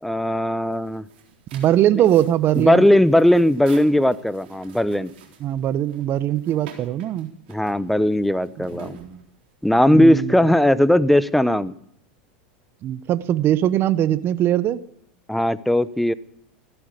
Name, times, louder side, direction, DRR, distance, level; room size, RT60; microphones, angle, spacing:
voice 1, 0.0-1.0 2.6-5.1 7.5-9.0 9.6-11.7 15.3-16.1, left 1 dB, ahead, 18 dB, 0.7 m, -18 dB
sound 1, 0.6-9.7, right 7 dB, 70° right, 3.9 m, -47 dB
voice 2, 1.5-2.8 5.4-7.3 8.8-9.2 9.9-10.4 12.8-14.8, right 12 dB, 40° right, 16 dB, 1.0 m, -21 dB
15.0 x 11.5 x 8.2 m, 0.69 s
hypercardioid pair, 100°, 6 cm